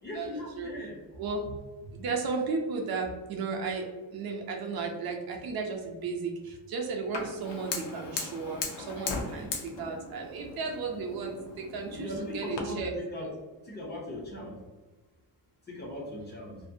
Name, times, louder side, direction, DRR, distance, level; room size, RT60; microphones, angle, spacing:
voice 1, 0.0-1.0 11.9-13.3 13.7-14.6 15.7-16.6, left 1 dB, 25° left, -3 dB, 0.4 m, -39 dB
voice 2, 0.6-0.9 1.2-1.5 1.9-13.3, right 4 dB, 60° right, 1 dB, 0.5 m, -34 dB
Fire, 7.1-12.6, left 4 dB, 75° left, 0.6 m, -38 dB
2.6 x 2.1 x 2.5 m, 1.2 s
cardioid pair, 165°, 43 cm